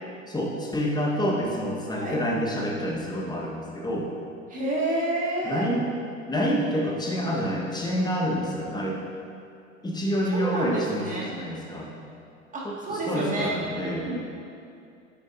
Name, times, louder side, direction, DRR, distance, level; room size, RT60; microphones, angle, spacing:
voice 1, 0.3-4.1 5.4-5.9 6.3-9.0 9.8-11.9 12.6-14.1, equal, 10° left, -2 dB, 1.3 m, -28 dB
voice 2, 4.5-5.6 10.3-11.3 12.5-14.2, right 2 dB, 20° right, -4 dB, 2.0 m, -29 dB
9.1 x 9.1 x 2.7 m, 2.5 s
figure-of-eight pair, 85°, 40 cm